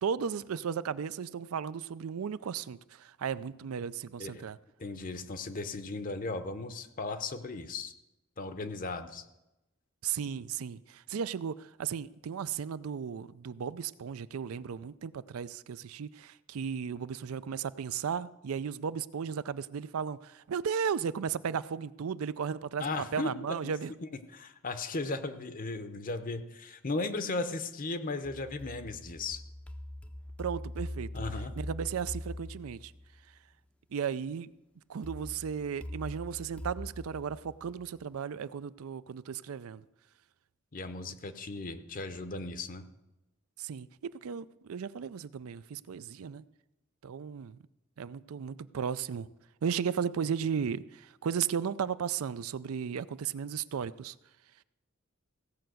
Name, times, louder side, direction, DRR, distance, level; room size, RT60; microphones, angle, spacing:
voice 1, 0.0-4.6 10.0-23.9 30.4-31.2 31.6-32.9 33.9-34.5 34.9-39.8 43.6-46.4 47.0-47.6 48.0-49.3 49.6-54.2, right 7 dB, 80° right, 0.4 m, -35 dB
voice 2, 4.8-7.9 8.4-9.2 22.8-23.3 24.0-29.4 31.1-31.5 40.7-42.8, left 3 dB, 40° left, 0.7 m, -36 dB
sound 1, 28.2-33.2 35.0-38.0, left 1 dB, 5° left, 0.5 m, -42 dB
16.0 x 5.7 x 7.7 m
head